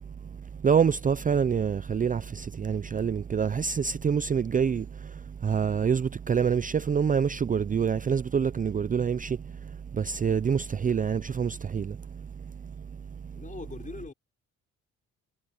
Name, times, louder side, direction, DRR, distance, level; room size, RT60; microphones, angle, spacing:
voice 1, 0.6-4.9 5.4-9.4 10.0-12.0, right 7 dB, 25° right, 0.5 m, -26 dB
voice 2, 13.3-14.1, left 4 dB, 25° left, 5.8 m, -41 dB
cardioid pair, 90°, 30 cm